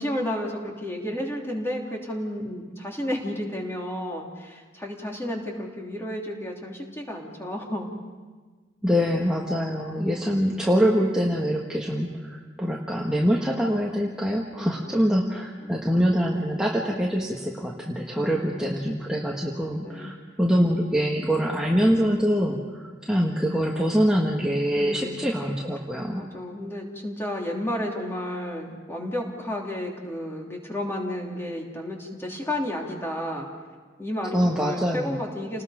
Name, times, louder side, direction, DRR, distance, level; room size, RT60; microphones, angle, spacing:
voice 1, 0.0-7.9 9.9-10.4 14.5-15.0 15.6-15.8 18.2-18.7 19.8-20.1 21.3-21.4 22.5-22.6 24.7-25.2 26.1-33.5 34.0-35.6, left 1 dB, 15° left, -1 dB, 3.1 m, -32 dB
voice 2, 8.8-26.3 34.3-35.2, equal, 5° right, -3 dB, 1.5 m, -24 dB
30.0 x 19.5 x 5.1 m, 1.4 s
head